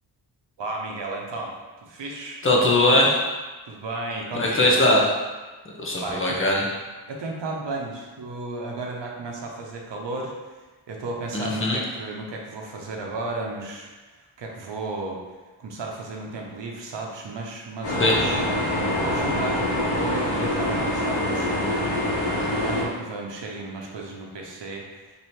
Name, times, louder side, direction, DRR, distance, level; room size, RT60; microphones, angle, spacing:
voice 1, 0.6-1.5 1.8-2.4 3.6-4.8 6.0-6.4 7.1-10.3 10.9-15.2 15.6-18.4 19.0-25.2, right 3 dB, 70° right, 0 dB, 0.7 m, -34 dB
voice 2, 2.4-3.2 4.3-5.1 5.8-6.6 11.3-11.8 18.0-18.1, left 1 dB, 30° left, -2 dB, 0.7 m, -20 dB
sound 1, 17.8-22.8, left 1 dB, 70° left, 1.0 m, -25 dB
3.2 x 2.7 x 4.3 m, 1.3 s
wide cardioid pair, 110°, 44 cm